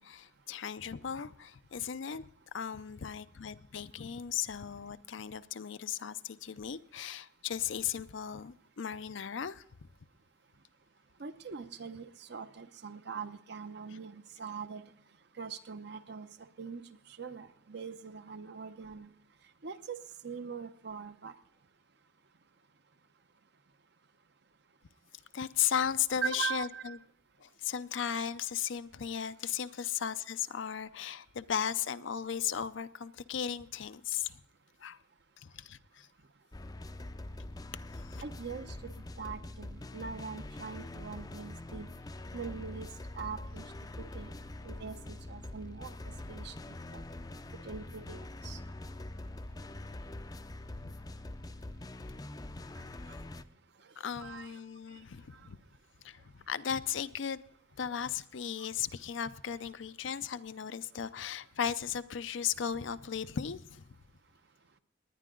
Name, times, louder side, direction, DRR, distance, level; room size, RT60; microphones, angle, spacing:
voice 1, 0.0-2.2 2.5-9.6 25.3-27.0 27.4-34.4 34.8-35.0 35.4-36.1 37.9-38.2 50.7-50.9 54.0-55.6 56.0-57.4 57.8-63.8, left 8 dB, 70° left, 0.5 m, -36 dB
voice 2, 11.2-14.8 15.4-16.3 16.6-16.8 17.2-19.1 19.6-20.0 20.2-21.3 26.2-27.0 38.2-38.9 39.2-41.9 42.3-42.9 43.1-43.7 44.1-44.3 44.6-45.9 46.3-47.0 47.6-48.6 52.8-52.9 54.2-54.6, right 6 dB, 60° right, 0.8 m, -42 dB
sound 1, 36.5-53.4, left 1 dB, 20° left, 0.5 m, -44 dB
19.0 x 10.0 x 3.8 m
head